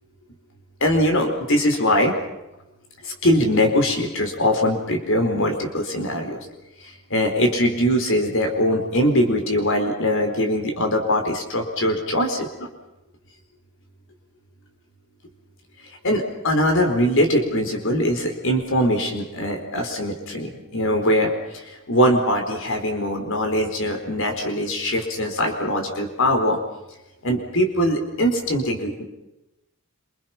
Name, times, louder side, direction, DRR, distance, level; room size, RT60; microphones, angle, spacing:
voice 1, 0.8-2.1 3.0-6.4 6.8-12.7 16.0-26.6 27.2-29.0, equal, 60° left, 4 dB, 4.6 m, -22 dB
28.5 x 26.5 x 6.0 m, 0.93 s
head